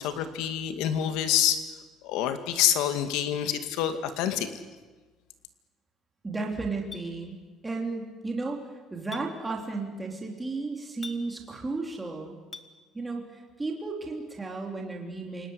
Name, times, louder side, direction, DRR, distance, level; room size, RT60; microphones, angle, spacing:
voice 1, 0.0-1.6 2.0-4.5, left 10 dB, 80° left, 9 dB, 2.2 m, -27 dB
voice 2, 6.2-7.4 7.6-8.6 8.9-12.4 12.9-15.5, right 3 dB, 10° right, 0 dB, 3.1 m, -34 dB
Chink clink, 6.9-7.1 9.1-9.3 11.0-11.2 12.5-12.7, left 4 dB, 20° left, 1.3 m, -41 dB
29.0 x 18.5 x 9.5 m, 1.3 s
cardioid pair, 175°, 0 cm